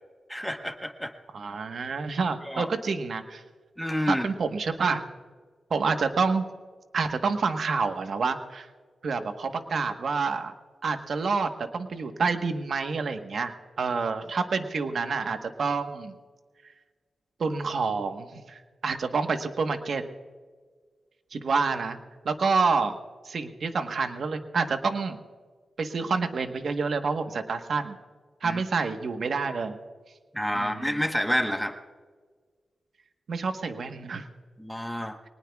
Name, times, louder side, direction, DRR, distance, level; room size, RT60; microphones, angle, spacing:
voice 1, 0.3-1.1 2.5-2.7 3.8-4.3 28.4-28.6 30.3-31.8 34.6-35.2, equal, ahead, 6 dB, 1.2 m, -28 dB
voice 2, 1.3-3.4 4.1-5.0 5.7-6.4 6.9-8.7 9.0-10.5 10.8-16.2 17.4-20.0 21.3-22.0 22.2-23.0 23.2-25.2 25.8-28.0 28.4-29.8 30.5-30.8 33.3-34.3, right 4 dB, 65° right, 7 dB, 1.2 m, -28 dB
24.0 x 19.5 x 2.4 m, 1.5 s
wide cardioid pair, 90°, 0 cm